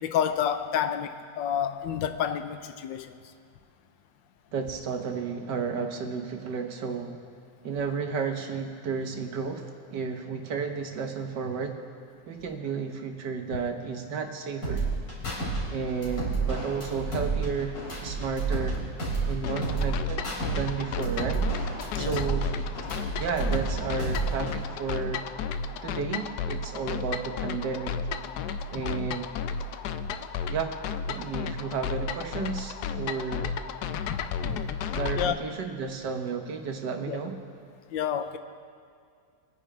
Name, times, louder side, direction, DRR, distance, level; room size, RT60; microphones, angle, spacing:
voice 1, 0.0-3.1 21.9-22.2 34.1-34.6 35.2-35.3 37.1-37.2 37.9-38.4, left 9 dB, 85° left, 9 dB, 1.4 m, -29 dB
voice 2, 4.5-7.2 7.6-11.8 12.3-14.9 15.7-18.8 19.3-20.2 20.5-21.4 22.0-22.5 23.2-25.3 25.8-27.9 28.7-29.3 30.5-30.8 31.1-33.6 34.9-37.4, right 5 dB, 70° right, 5 dB, 1.7 m, -32 dB
sound 1, 14.6-15.6 15.9-18.7 19.0-20.6 20.9-23.7 24.0-24.6, right 4 dB, 55° left, 4.1 m, -30 dB
sound 2, 19.4-35.3, left 5 dB, 70° left, 1.1 m, -33 dB
24.5 x 9.9 x 3.3 m, 2.2 s
omnidirectional pair, 1.9 m